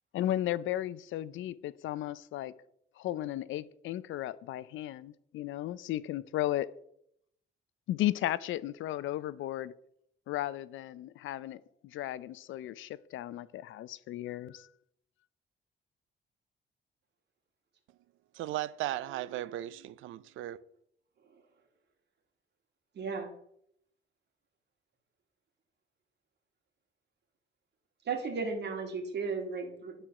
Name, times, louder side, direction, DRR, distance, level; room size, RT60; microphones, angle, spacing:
voice 1, 0.1-2.5 3.0-6.7 7.9-9.7 10.3-14.7, left 13 dB, 80° left, 0.5 m, -35 dB
voice 2, 18.3-20.6, right 14 dB, 85° right, 0.5 m, -36 dB
voice 3, 23.0-23.3 28.1-29.9, right 4 dB, 60° right, 2.3 m, -34 dB
11.0 x 4.5 x 6.0 m
cardioid pair, 90°, 20 cm